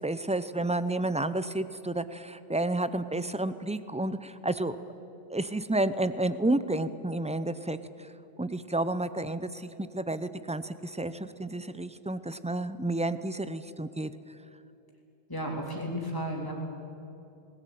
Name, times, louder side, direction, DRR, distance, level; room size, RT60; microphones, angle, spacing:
voice 1, 0.0-4.8 5.3-8.1 8.4-14.1, right 2 dB, 10° right, 13 dB, 0.4 m, -31 dB
voice 2, 15.3-16.5, equal, 20° left, -1 dB, 3.6 m, -33 dB
19.5 x 17.5 x 9.2 m, 2.8 s
omnidirectional pair, 1.1 m